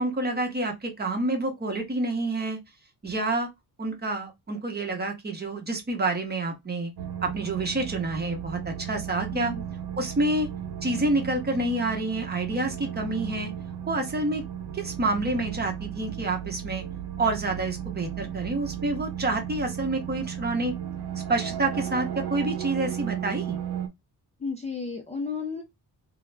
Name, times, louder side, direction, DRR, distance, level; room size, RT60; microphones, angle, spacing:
voice 1, 0.0-2.6 3.0-3.5 3.8-6.9 7.2-9.5 10.0-10.5 10.8-13.5 13.9-14.4 14.7-16.8 17.2-20.7 21.3-23.6, right 2 dB, 25° right, 0.7 m, -28 dB
sound 1, 7.0-23.9, right 9 dB, 80° right, 0.7 m, -35 dB
voice 2, 9.3-9.6 24.4-25.6, left 4 dB, 20° left, 0.3 m, -33 dB
3.5 x 2.0 x 3.2 m
wide cardioid pair, 170°, 39 cm